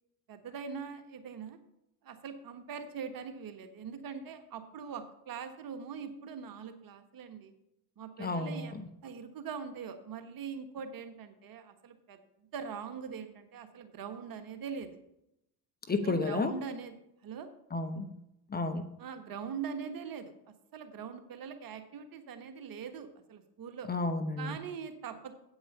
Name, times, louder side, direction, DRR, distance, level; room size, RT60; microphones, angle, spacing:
voice 1, 0.3-1.6 2.0-7.5 8.0-14.9 16.0-17.0 17.2-17.5 19.0-20.3 20.7-23.9 24.4-25.3, right 6 dB, 45° right, 8 dB, 1.4 m, -42 dB
voice 2, 8.2-8.7 15.9-16.5 17.7-18.1 18.5-18.9 23.9-24.6, left 3 dB, 20° left, 8 dB, 0.8 m, -31 dB
8.6 x 8.3 x 5.5 m, 0.82 s
hypercardioid pair, 60°, 47 cm